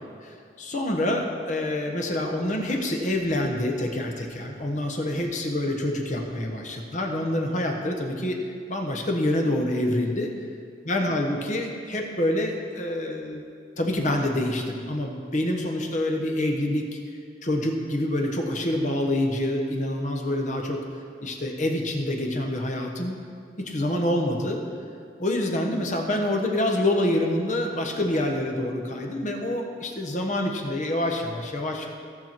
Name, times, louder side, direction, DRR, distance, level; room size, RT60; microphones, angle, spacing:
voice 1, 0.2-8.4 8.7-10.3 10.9-13.4 13.8-17.0 17.4-20.8 21.2-23.2 23.6-24.6 25.2-31.9, left 1 dB, 45° left, 2 dB, 1.2 m, -26 dB
17.0 x 6.0 x 4.5 m, 2.3 s
head